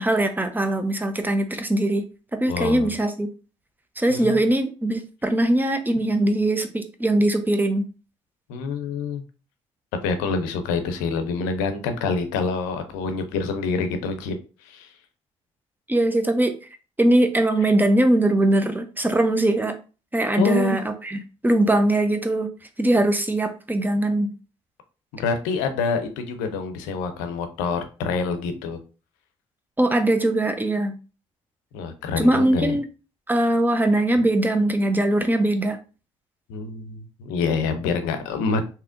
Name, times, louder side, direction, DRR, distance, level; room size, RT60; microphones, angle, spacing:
voice 1, 0.0-2.1 2.3-3.3 4.0-7.9 15.9-16.5 17.0-19.8 20.1-22.5 22.8-24.3 29.8-31.0 32.2-32.8 33.3-35.8, right 1 dB, 15° right, 7 dB, 0.7 m, -21 dB
voice 2, 2.5-2.9 4.1-4.4 8.5-9.2 10.0-14.4 14.6-14.9 20.4-20.8 25.1-28.8 31.7-32.7 36.5-38.6, left 4 dB, 90° left, 8 dB, 0.5 m, -26 dB
3.5 x 2.8 x 2.5 m, 0.34 s
supercardioid pair, 55°, 13 cm